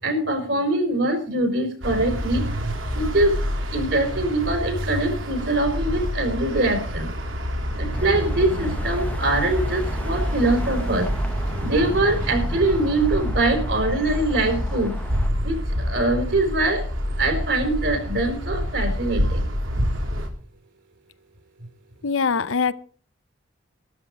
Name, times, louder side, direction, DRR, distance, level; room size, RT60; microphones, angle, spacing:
voice 1, 0.0-2.4 2.9-3.3 3.7-7.1 7.8-11.1 11.6-14.9 15.4-16.8 17.2-19.5, right 2 dB, 60° right, 4.4 m, -23 dB
sound 1, 1.8-20.3, equal, 85° right, 3.0 m, -27 dB
sound 2, 7.9-15.3, left 1 dB, 10° left, 0.8 m, -35 dB
voice 2, 22.0-22.7, left 5 dB, 80° left, 0.7 m, -22 dB
13.0 x 12.5 x 4.8 m
head